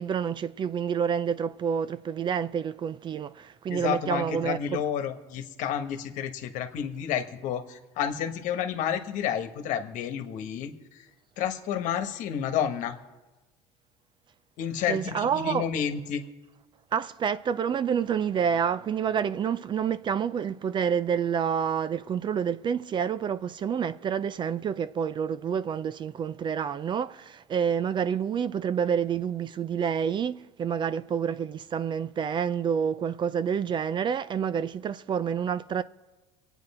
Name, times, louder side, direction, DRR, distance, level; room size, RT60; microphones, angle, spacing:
voice 1, 0.0-4.8 14.9-15.7 16.9-35.8, right 7 dB, 35° right, 0.4 m, -28 dB
voice 2, 3.7-11.1 11.4-13.0 14.6-16.3, left 9 dB, 60° left, 1.4 m, -30 dB
24.0 x 9.0 x 4.3 m
supercardioid pair, 100°, 14 cm